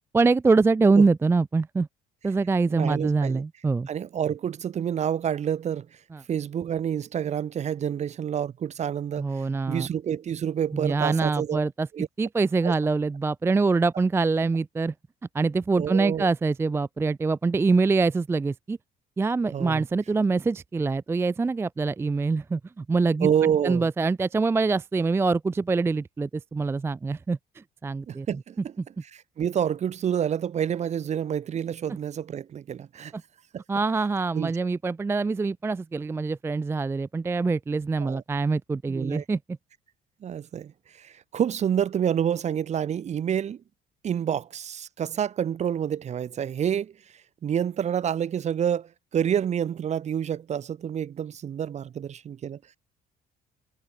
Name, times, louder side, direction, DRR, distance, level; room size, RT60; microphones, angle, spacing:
voice 1, 0.1-1.9 2.2-3.9 6.1-6.2 9.2-9.9 10.7-11.9 12.2-14.9 15.3-18.8 19.2-23.3 23.6-28.3 33.1-33.2 33.7-39.4, right 4 dB, 15° right, 0.4 m, -24 dB
voice 2, 2.7-3.4 3.9-5.9 6.3-9.2 9.7-11.6 11.9-12.1 12.6-12.7 15.8-16.3 19.5-19.8 23.2-23.9 28.1-28.7 29.1-33.1 33.5-33.6 34.3-34.5 38.0-38.2 38.9-39.2 40.2-40.7 41.0-43.6 44.0-46.9 47.4-52.6, right 9 dB, 40° right, 0.9 m, -28 dB
cardioid pair, 110°, 17 cm